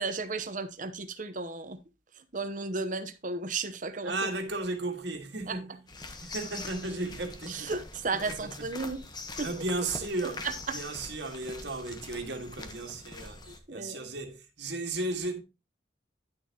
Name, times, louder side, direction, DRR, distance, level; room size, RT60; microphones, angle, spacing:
voice 1, 0.0-1.8 2.3-4.1 5.5-5.6 7.5-9.0 9.4-9.5 13.7-14.0, right 3 dB, 45° right, 0.9 m, -34 dB
voice 2, 4.0-5.9 6.2-7.7 8.1-8.7 9.4-15.4, right 2 dB, 70° right, 1.9 m, -35 dB
sound 1, 5.9-13.6, left 3 dB, 25° left, 1.1 m, -43 dB
10.5 x 7.2 x 2.9 m
head